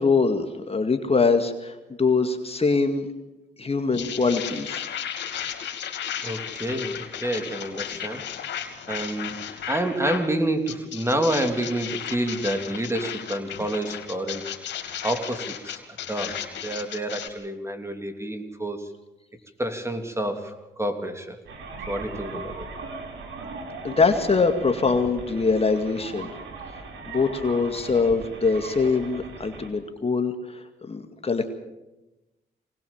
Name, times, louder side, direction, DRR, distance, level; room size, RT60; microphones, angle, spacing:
voice 1, 0.0-3.1 3.6-4.9 23.8-26.3 27.1-31.5, left 4 dB, 35° left, 6 dB, 2.1 m, -23 dB
sound 1, 3.9-10.3 10.7-17.3, left 9 dB, 80° left, 2.6 m, -34 dB
voice 2, 6.2-8.2 8.9-14.4 15.0-15.8 16.1-18.9 19.6-21.4 21.9-22.7, right 1 dB, 15° right, 6 dB, 3.2 m, -28 dB
sound 2, 21.5-29.7, right 3 dB, 85° right, 3.8 m, -38 dB
24.0 x 19.0 x 7.3 m, 1.0 s
cardioid pair, 65°, 18 cm